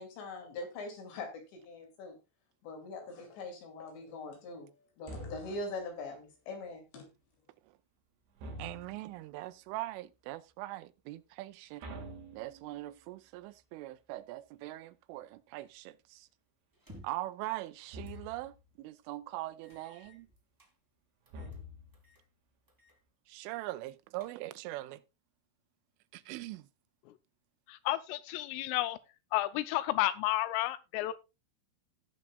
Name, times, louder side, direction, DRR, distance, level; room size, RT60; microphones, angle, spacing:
voice 1, 0.0-2.2 2.6-4.7 5.0-7.1, left 3 dB, 65° left, 4.5 m, -42 dB
sound 1, 5.1-5.8 8.4-9.2 11.8-13.0 17.9-18.6 21.3-22.1, equal, 60° right, 4.4 m, -46 dB
voice 2, 8.6-11.8 12.3-16.3 17.0-20.3 23.3-25.0 26.1-26.7, right 17 dB, 80° right, 3.1 m, -42 dB
sound 2, 16.7-17.3 18.0-18.3 18.7-18.8 19.6-20.7 21.2-21.6 21.9-22.3 22.7-23.0 23.3-23.4 23.9-24.7, equal, 10° right, 1.3 m, -57 dB
voice 3, 27.7-29.0 29.3-31.1, left 16 dB, 85° left, 3.1 m, -31 dB
17.5 x 7.4 x 2.3 m
omnidirectional pair, 5.8 m